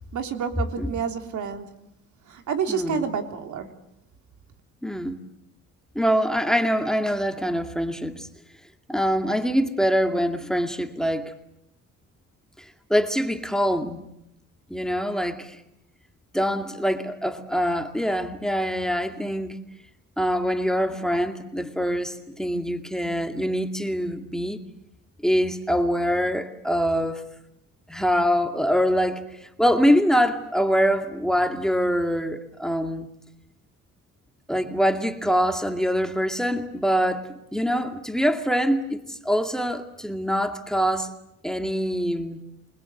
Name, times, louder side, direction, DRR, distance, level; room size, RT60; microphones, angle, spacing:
voice 1, 0.1-1.7 2.3-3.7, right 7 dB, 75° right, 6 dB, 3.3 m, -29 dB
voice 2, 2.7-3.1 4.8-5.2 6.0-8.3 8.9-11.3 12.9-14.0 14.7-15.6 16.3-19.6 20.2-24.6 25.2-27.2 27.9-33.1 34.5-41.1 41.4-42.4, equal, ahead, 6 dB, 2.3 m, -24 dB
29.0 x 21.0 x 8.0 m, 0.81 s
cardioid pair, 90°, 30 cm